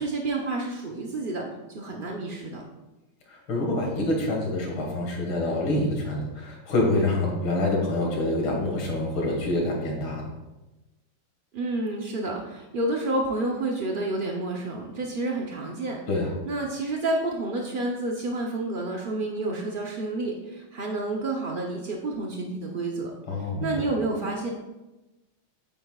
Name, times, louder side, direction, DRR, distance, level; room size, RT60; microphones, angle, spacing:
voice 1, 0.0-1.5 1.7-2.6 11.5-16.0 16.5-23.1 23.6-24.5, right 2 dB, 75° right, 0 dB, 0.4 m, -29 dB
voice 2, 3.3-10.2 16.1-16.3 23.3-23.9, left 1 dB, 80° left, -1 dB, 2.6 m, -26 dB
8.8 x 8.6 x 2.4 m, 1.0 s
omnidirectional pair, 2.2 m